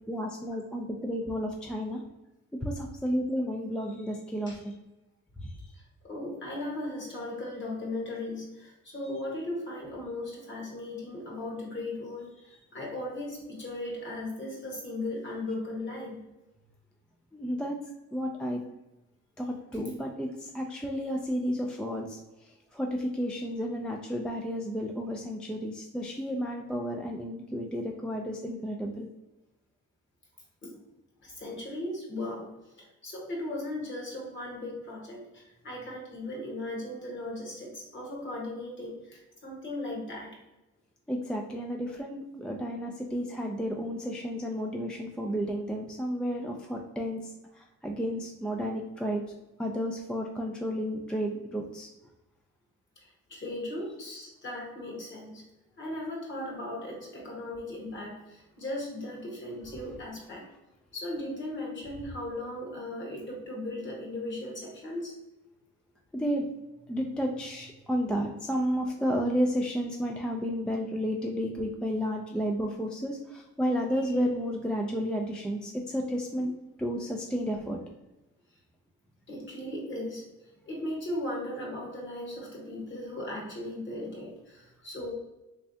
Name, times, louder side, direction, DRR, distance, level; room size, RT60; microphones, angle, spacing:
voice 1, 0.1-2.0 2.6-4.7 5.4-5.5 17.3-17.8 18.1-18.6 19.4-22.2 22.7-29.1 41.1-47.2 47.8-49.2 49.6-51.9 66.1-66.5 66.9-76.5 76.8-77.8, equal, 5° left, 1 dB, 0.3 m, -32 dB
voice 2, 6.0-12.3 12.7-16.2 30.6-30.8 31.2-32.5 32.8-40.3 53.0-55.4 55.8-60.4 60.9-65.1 79.3-80.2 80.6-85.1, left 1 dB, 40° left, -2 dB, 1.4 m, -37 dB
3.3 x 3.3 x 2.7 m, 1.0 s
cardioid pair, 90°, 30 cm